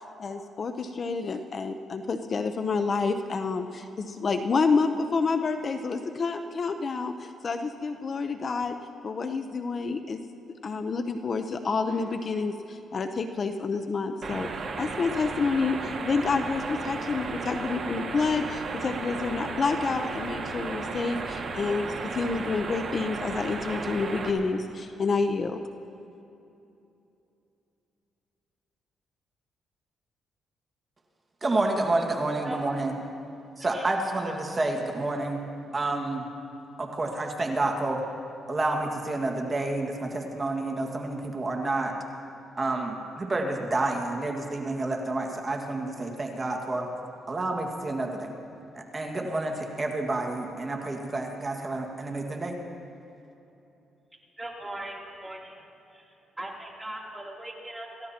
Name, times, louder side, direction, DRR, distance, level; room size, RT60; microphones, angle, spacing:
voice 1, 0.2-8.8 9.0-10.2 10.6-14.5 14.8-25.6, left 4 dB, 45° left, 7 dB, 0.7 m, -28 dB
sound 1, 11.9-12.8, right 4 dB, 65° right, 2.1 m, -51 dB
sound 2, 14.2-24.3, right 4 dB, 50° right, 1.9 m, -34 dB
voice 2, 31.4-32.9 33.6-35.4 35.7-36.2 36.8-38.0 38.5-41.9 42.6-46.9 47.3-48.3 48.7-52.5, right 2 dB, 30° right, 1 dB, 1.8 m, -29 dB
voice 3, 33.6-33.9 54.4-55.6 55.9-58.1, right 1 dB, 10° right, -2 dB, 3.1 m, -40 dB
28.5 x 15.5 x 2.9 m, 2.8 s
cardioid pair, 90°, 0 cm